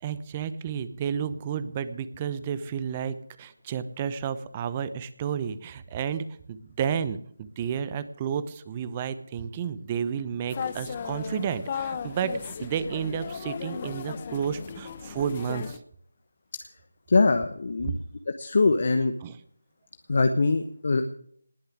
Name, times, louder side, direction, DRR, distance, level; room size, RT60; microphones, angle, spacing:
voice 1, 0.0-15.8 17.8-17.9 19.2-19.3, right 7 dB, 20° right, 14 dB, 0.9 m, -31 dB
sound 1, 10.5-15.8, left 6 dB, 30° left, 1.0 m, -36 dB
voice 2, 17.1-18.0 18.3-19.1 20.1-21.0, left 3 dB, 50° left, 8 dB, 1.1 m, -23 dB
19.5 x 6.8 x 9.4 m, 0.65 s
figure-of-eight pair, 160°, 0 cm